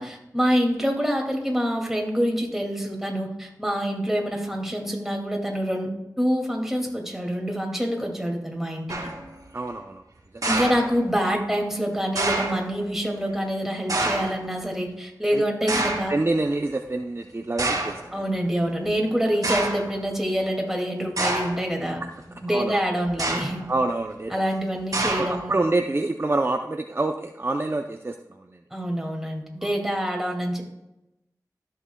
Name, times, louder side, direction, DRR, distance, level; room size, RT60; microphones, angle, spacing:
voice 1, 0.0-5.9 6.2-9.0 10.4-16.1 18.1-22.0 22.4-23.6 24.3-25.5 28.7-30.6, equal, 5° right, 0 dB, 2.3 m, -26 dB
sound 1, 8.9-9.3 10.4-11.3 12.2-12.7 13.9-14.5 15.7-16.2 17.0-17.1 17.6-18.1 18.9-19.0 19.4-19.9 21.2-21.7 23.1-23.7 24.9-25.6, right 2 dB, 60° right, 2.0 m, -27 dB
voice 2, 9.5-10.0 10.3-10.5 15.3-15.4 16.1-18.3 22.5-22.8 23.7-24.5 25.2-28.2 28.5-28.6, right 2 dB, 35° right, 4 dB, 0.5 m, -26 dB
13.5 x 6.6 x 2.3 m, 0.89 s
wide cardioid pair, 45°, 7 cm